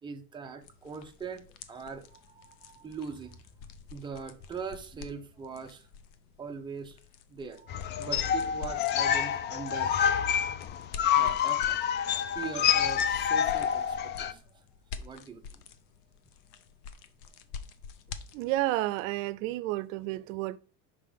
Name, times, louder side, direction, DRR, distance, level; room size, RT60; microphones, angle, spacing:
voice 1, 0.0-3.4 3.9-5.9 6.4-7.0 7.3-10.0 11.1-14.6 15.0-15.6, right 5 dB, 10° right, 0.7 m, -42 dB
sound 1, 0.6-18.7, left 6 dB, 70° left, 0.9 m, -48 dB
sound 2, 7.7-14.3, left 9 dB, 30° left, 0.4 m, -27 dB
voice 2, 18.3-20.6, right 17 dB, 85° right, 0.5 m, -31 dB
5.9 x 3.8 x 5.0 m
cardioid pair, 145°, 38 cm